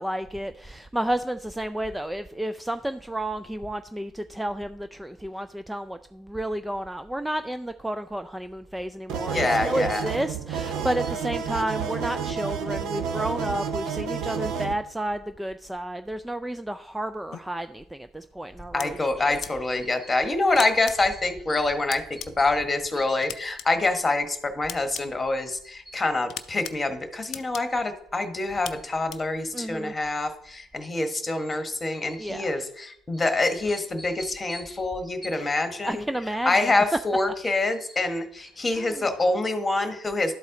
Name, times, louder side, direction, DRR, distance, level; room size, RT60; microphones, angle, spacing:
voice 1, 0.0-19.4 29.5-29.9 32.2-32.5 35.8-36.8 38.7-39.1, right 1 dB, 5° right, 10 dB, 0.3 m, -31 dB
sound 1, 9.1-14.7, right 6 dB, 65° right, 0.8 m, -30 dB
voice 2, 9.3-10.1 18.7-36.0 36.4-40.3, left 2 dB, 25° left, 8 dB, 1.2 m, -26 dB
sound 2, 17.3-17.4 18.8-18.9 19.4-19.5 20.6-20.9 21.9-22.3 23.2-23.7 24.7-25.0 26.3-26.7 27.3-27.6 28.6-28.7 29.1-29.2, left 9 dB, 55° left, 0.5 m, -35 dB
11.5 x 4.1 x 3.8 m, 0.69 s
hypercardioid pair, 60°, 0 cm